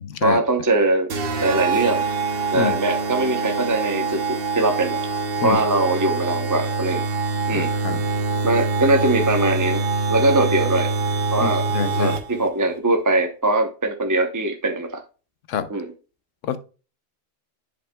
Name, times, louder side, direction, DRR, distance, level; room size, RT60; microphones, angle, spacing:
voice 1, 0.2-1.1 1.4-2.1 2.5-4.2 4.6-5.0 5.4-7.0 7.5-7.7 8.4-9.8 10.1-10.9 11.3-11.7 12.0-15.0 15.7-15.9, right 2 dB, 20° right, 0.7 m, -21 dB
sound 1, 1.1-12.5, right 4 dB, 55° right, 1.0 m, -24 dB
voice 2, 7.5-8.0 11.4-12.2 15.5-15.7 16.4-16.6, left 8 dB, 85° left, 1.1 m, -26 dB
10.5 x 5.1 x 2.2 m
omnidirectional pair, 1.3 m